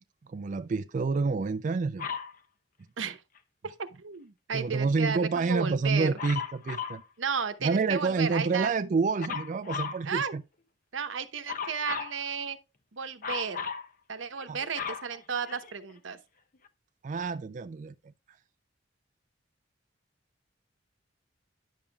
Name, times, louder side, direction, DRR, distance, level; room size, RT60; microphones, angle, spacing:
voice 1, 0.3-2.1 4.5-7.0 7.6-10.4 14.5-14.6 17.0-17.9, right 4 dB, 40° right, 0.3 m, -28 dB
Dog, 2.0-2.4 6.2-7.0 9.2-10.0 11.5-12.2 13.2-13.9 14.4-15.9 16.7-16.8, left 6 dB, 45° left, 0.7 m, -36 dB
voice 2, 3.8-6.1 7.2-8.7 10.0-10.3 10.9-12.6 12.9-13.6 14.1-16.2, right 6 dB, 85° right, 0.9 m, -33 dB
10.0 x 7.1 x 2.3 m
head